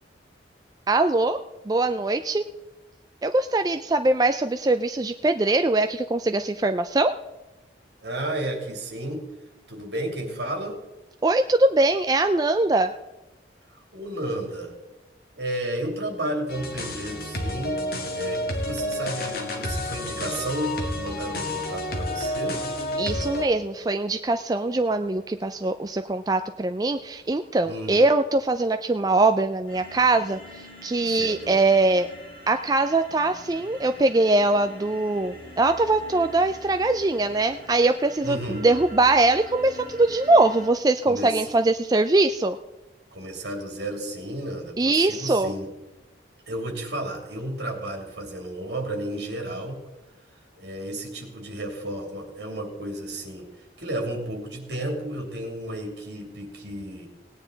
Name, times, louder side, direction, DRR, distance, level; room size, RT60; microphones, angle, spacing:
voice 1, 0.9-1.4 1.7-2.5 3.2-7.1 11.2-12.9 23.0-32.1 32.5-42.6 44.8-45.5, right 2 dB, 20° right, 8 dB, 0.4 m, -22 dB
voice 2, 8.0-9.2 9.7-10.8 13.9-14.7 15.4-17.8 18.1-22.6 27.6-28.0 31.1-31.6 38.2-38.7 41.0-41.5 43.1-45.7 46.5-49.8 50.6-53.5 53.8-57.1, right 1 dB, 65° right, 2 dB, 2.8 m, -32 dB
sound 1, 16.5-23.5, left 1 dB, 55° left, 2.1 m, -30 dB
sound 2, 29.7-40.7, equal, 25° left, 5.2 m, -45 dB
18.0 x 9.6 x 3.9 m, 1.0 s
head